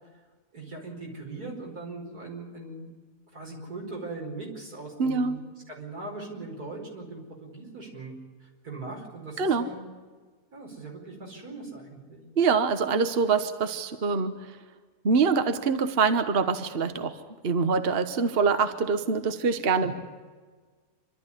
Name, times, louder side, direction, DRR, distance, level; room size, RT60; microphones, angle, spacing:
voice 1, 0.5-2.9 3.3-5.4 5.7-8.1 8.4-9.9 10.5-12.2 19.8-19.9, right 3 dB, 85° right, -1 dB, 5.4 m, -40 dB
voice 2, 5.0-5.4 9.4-9.7 12.4-14.4 15.0-17.2 17.4-19.9, right 5 dB, 45° right, 9 dB, 1.2 m, -24 dB
27.0 x 12.5 x 9.8 m, 1.4 s
omnidirectional pair, 1.6 m